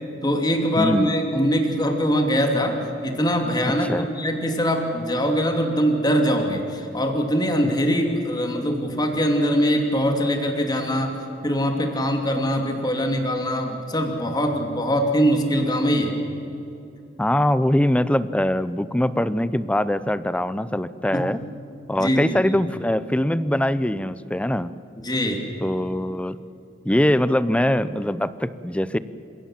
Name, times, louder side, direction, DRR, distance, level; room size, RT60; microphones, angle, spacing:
voice 1, 0.2-11.2 11.4-16.1 21.1-21.2 22.0-22.4 25.0-25.4, equal, 20° left, 3 dB, 2.8 m, -22 dB
voice 2, 0.8-1.1 3.7-4.1 7.6-7.7 17.2-21.4 21.9-24.7 25.6-26.4 26.9-29.0, left 1 dB, 5° left, 15 dB, 0.6 m, -22 dB
28.5 x 17.0 x 7.5 m, 2.8 s
head